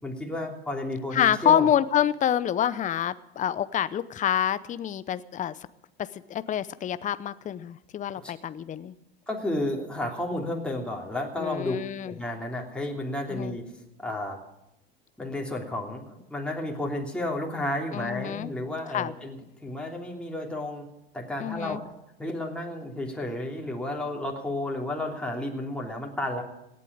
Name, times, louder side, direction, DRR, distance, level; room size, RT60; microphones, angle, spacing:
voice 1, 0.0-1.7 8.2-8.3 9.3-11.8 12.0-13.6 14.0-14.4 15.2-19.4 19.6-20.9 21.1-21.8 22.2-26.4, left 1 dB, 5° left, -1 dB, 3.1 m, -32 dB
voice 2, 1.1-5.5 6.1-8.9 11.4-12.1 13.3-13.5 17.9-18.5 18.9-19.1 21.4-21.8, left 10 dB, 25° left, 15 dB, 0.7 m, -27 dB
17.5 x 8.4 x 8.7 m, 0.88 s
hypercardioid pair, 90°, 30 cm